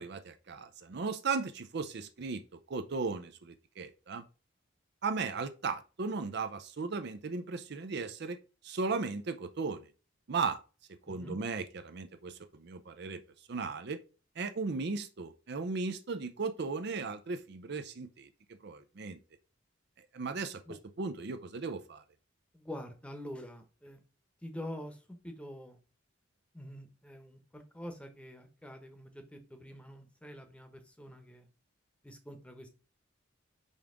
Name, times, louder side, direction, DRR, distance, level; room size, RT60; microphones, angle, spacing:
voice 1, 0.0-2.4 2.7-4.2 5.0-8.4 8.6-9.9 10.3-10.6 11.1-13.2 13.5-14.0 14.4-18.3 18.6-19.2 20.1-20.6 21.0-22.0, right 4 dB, 55° right, 0.5 m, -36 dB
voice 2, 11.1-11.4 20.7-20.8 22.5-24.0 24.4-25.8 26.5-31.5 32.0-32.7, left 1 dB, 5° left, 1.0 m, -46 dB
5.4 x 3.5 x 5.0 m
head